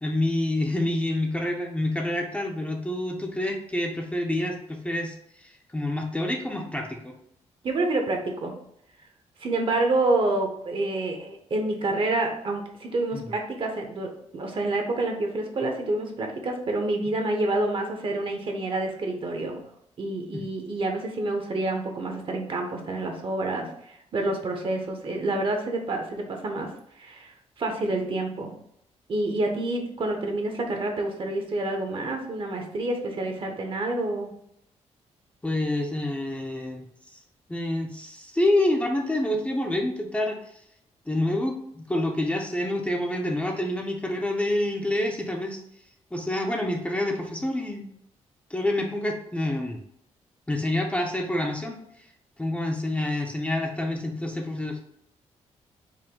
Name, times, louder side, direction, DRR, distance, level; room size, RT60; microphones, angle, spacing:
voice 1, 0.0-7.1 13.1-13.2 20.3-20.4 35.4-37.2 37.5-40.6 41.1-45.6 46.1-47.9 48.5-49.8 50.5-52.1 52.4-54.8, left 1 dB, 10° left, 2 dB, 0.6 m, -27 dB
voice 2, 7.6-8.5 9.4-19.6 20.0-26.7 27.0-28.5 29.1-34.3, right 2 dB, 50° right, 3 dB, 0.9 m, -28 dB
4.8 x 2.1 x 3.7 m, 0.74 s
cardioid pair, 90°, 12 cm